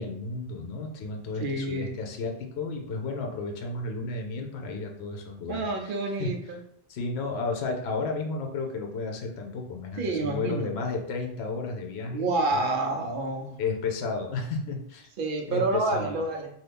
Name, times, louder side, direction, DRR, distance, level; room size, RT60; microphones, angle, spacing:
voice 1, 0.0-6.3 6.9-12.6 13.6-15.1 15.5-16.2, left 3 dB, 80° left, 2 dB, 0.8 m, -33 dB
voice 2, 1.4-1.9 5.5-6.6 10.0-10.8 12.1-13.6 15.2-16.5, right 2 dB, 60° right, 4 dB, 0.7 m, -28 dB
2.7 x 2.4 x 3.4 m, 0.70 s
omnidirectional pair, 1.1 m